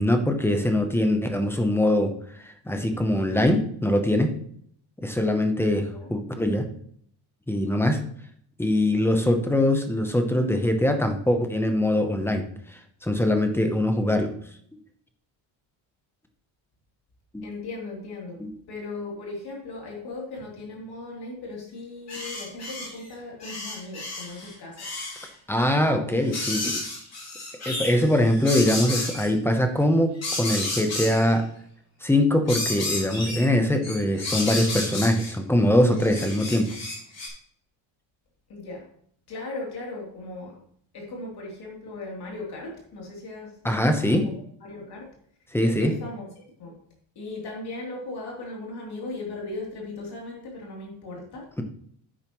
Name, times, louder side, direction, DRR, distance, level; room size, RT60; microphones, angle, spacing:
voice 1, 0.0-2.2 2.7-4.3 5.0-6.7 7.5-8.0 8.6-12.5 13.0-14.4 17.3-17.4 18.4-18.5 25.5-26.8 27.7-31.5 32.0-36.8 43.6-44.3 45.5-45.9, left 1 dB, 5° left, 6 dB, 0.7 m, -22 dB
voice 2, 5.7-6.1 17.4-18.4 18.7-24.9 26.0-26.3 38.5-38.9 39.3-40.6 40.9-44.3 44.6-45.1 45.6-46.8 47.1-51.5, left 2 dB, 50° left, -2 dB, 3.2 m, -38 dB
sound 1, 22.1-23.1 23.4-25.3 26.2-29.3 30.2-31.3 32.5-33.5 33.8-35.3 36.0-37.3, left 2 dB, 30° left, 3.2 m, -32 dB
10.5 x 8.9 x 3.1 m, 0.63 s
cardioid pair, 180°, 49 cm